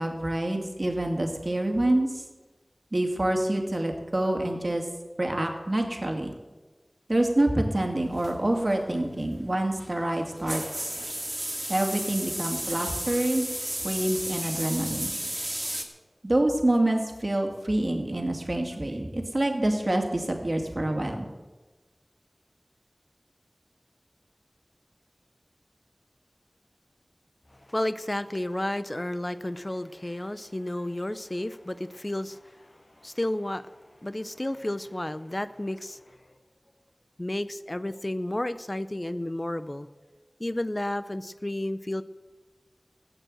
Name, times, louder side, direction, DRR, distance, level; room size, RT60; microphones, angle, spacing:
voice 1, 0.0-2.2 2.9-4.9 5.2-6.3 7.1-11.0 11.7-15.1 16.2-21.3, right 1 dB, 45° right, 3 dB, 2.5 m, -27 dB
sound 1, 8.1-15.8, right 1 dB, 25° right, 2.3 m, -34 dB
voice 2, 27.5-36.2 37.2-39.9 40.4-42.0, left 1 dB, 35° left, 13 dB, 0.6 m, -32 dB
14.5 x 9.1 x 7.8 m, 1.2 s
wide cardioid pair, 45°, 0 cm